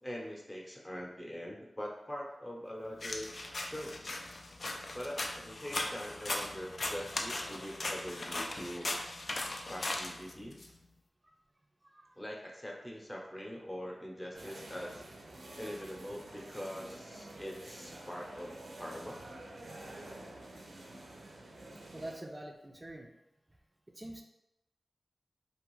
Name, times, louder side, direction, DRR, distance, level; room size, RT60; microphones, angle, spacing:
voice 1, 0.0-3.3 3.6-4.1 4.9-8.9 9.7-10.6 12.2-15.0 15.5-19.2, equal, 20° left, -2 dB, 0.8 m, -43 dB
sound 1, 3.0-10.7, left 2 dB, 60° left, 0.4 m, -38 dB
voice 2, 11.8-12.1 21.7-23.1 23.9-24.2, right 1 dB, 25° right, 2 dB, 0.4 m, -46 dB
sound 2, 14.3-22.1, right 1 dB, 85° right, 0.5 m, -49 dB
2.6 x 2.4 x 3.1 m, 0.88 s
cardioid pair, 40°, 0 cm